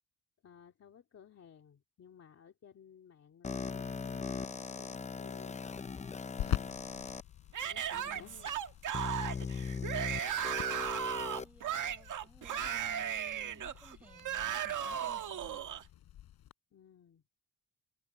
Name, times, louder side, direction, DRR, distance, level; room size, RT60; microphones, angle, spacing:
voice 1, 0.4-5.6 7.6-8.6 16.7-17.2, left 8 dB, 45° left, 2.7 m, -57 dB
sound 1, 3.4-7.2 7.9-8.0 8.9-11.4, left 5 dB, 20° left, 0.6 m, -39 dB
sound 2, 6.4-16.5, left 12 dB, 85° left, 5.0 m, -45 dB
Yell / Screaming, 7.5-15.8, right 9 dB, 55° right, 1.8 m, -36 dB
voice 2, 7.9-8.4 9.4-15.6, right 1 dB, 5° right, 5.2 m, -59 dB
cardioid pair, 160°, 36 cm